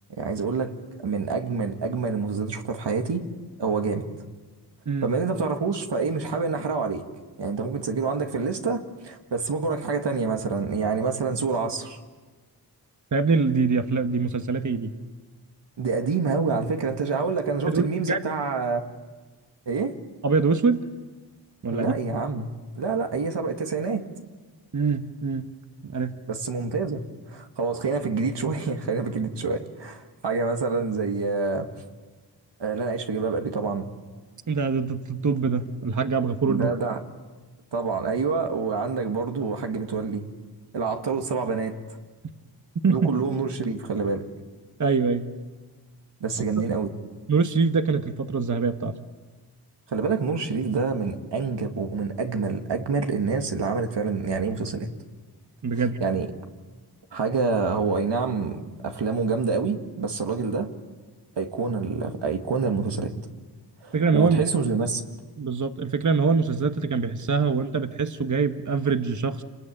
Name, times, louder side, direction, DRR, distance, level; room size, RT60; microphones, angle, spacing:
voice 1, 0.2-3.3 3.6-4.0 5.0-7.0 7.4-12.0 15.8-18.8 19.7-19.9 21.7-22.5 22.7-24.0 26.3-27.0 27.3-31.7 32.6-33.9 36.5-37.0 37.7-40.3 40.7-41.8 42.9-44.3 46.2-46.9 49.9-54.9 55.8-56.3 57.1-60.7 61.4-63.1 63.8-65.0, right 4 dB, 90° right, 5 dB, 2.0 m, -27 dB
voice 2, 13.1-14.9 17.7-18.2 20.2-20.8 21.6-21.9 24.7-25.5 25.8-26.2 34.5-36.7 42.8-43.1 44.8-45.3 47.3-48.9 55.6-56.0 63.9-64.4 65.4-69.4, right 4 dB, 45° right, 8 dB, 1.2 m, -24 dB
28.0 x 20.0 x 8.8 m, 1.4 s
wide cardioid pair, 80°, 41 cm